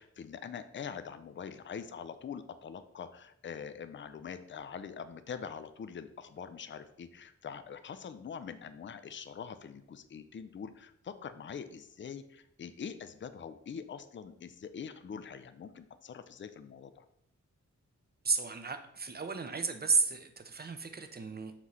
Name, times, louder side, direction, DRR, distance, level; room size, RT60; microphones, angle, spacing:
voice 1, 0.0-17.0, left 7 dB, 40° left, 11 dB, 0.4 m, -44 dB
voice 2, 18.2-21.5, right 5 dB, 35° right, 8 dB, 0.6 m, -32 dB
6.0 x 3.1 x 5.5 m, 0.74 s
wide cardioid pair, 140°, 30 cm